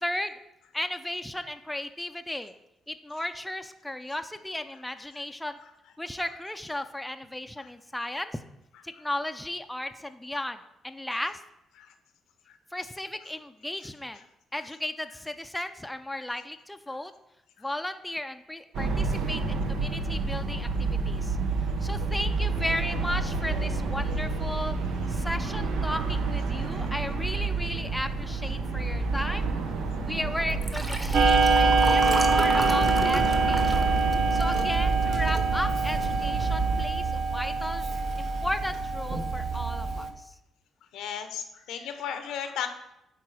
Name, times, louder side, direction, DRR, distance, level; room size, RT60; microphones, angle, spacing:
voice 1, 0.0-0.3 0.7-2.5 2.9-5.6 6.0-8.4 8.8-10.6 10.8-11.4 12.7-14.2 14.5-17.1 17.6-21.4 21.8-24.8 25.1-29.5 30.0-33.9 34.3-37.9 38.2-40.3, left 1 dB, 5° left, 8 dB, 0.4 m, -35 dB
sound 1, 18.7-36.9, right 3 dB, 85° right, 0.8 m, -29 dB
Liquid, 30.5-35.1 35.6-35.9 36.1-36.2, equal, 10° right, 0.9 m, -33 dB
Clock, 31.1-40.1, right 3 dB, 55° right, 0.8 m, -25 dB
voice 2, 40.9-42.7, left 8 dB, 85° left, 8 dB, 0.8 m, -34 dB
9.2 x 3.8 x 4.8 m, 0.86 s
cardioid pair, 90°, 0 cm